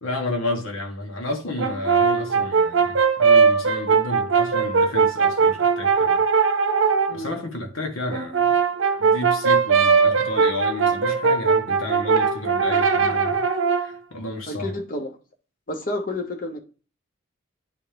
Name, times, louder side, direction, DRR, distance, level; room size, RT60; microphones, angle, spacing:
voice 1, 0.0-6.2 7.1-8.5 9.0-13.4 13.7-14.8, left 1 dB, 85° left, 1.4 m, -31 dB
Brass instrument, 1.6-7.2 8.1-13.9, right 5 dB, 70° right, 0.7 m, -20 dB
voice 2, 7.1-7.4 14.5-15.1 15.7-16.6, left 1 dB, 40° left, 0.8 m, -30 dB
9.6 x 3.4 x 3.4 m
head